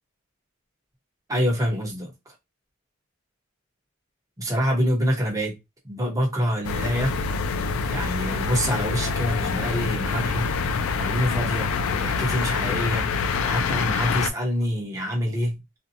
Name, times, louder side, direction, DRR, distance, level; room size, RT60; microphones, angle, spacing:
voice 1, 1.3-2.3 4.4-5.6 5.8-7.2 7.9-13.1 13.4-15.6, equal, 15° right, 0.8 m, -26 dB
sound 1, 6.6-14.3, left 5 dB, 90° left, 0.3 m, -26 dB
2.6 x 2.1 x 2.7 m
head